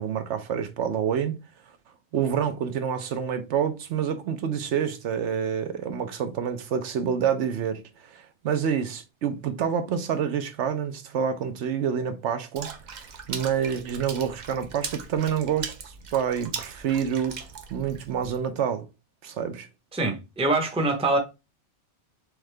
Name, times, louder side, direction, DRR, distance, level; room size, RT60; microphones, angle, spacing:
voice 1, 0.0-1.4 2.1-12.7 13.3-17.4 17.7-18.8 19.2-19.7, right 8 dB, 75° right, 0.9 m, -27 dB
Water / Splash splatter, 12.6-18.4, right 6 dB, 50° right, 0.6 m, -39 dB
voice 2, 19.9-21.2, right 2 dB, 5° right, 0.6 m, -24 dB
3.7 x 3.5 x 3.2 m
omnidirectional pair, 1.2 m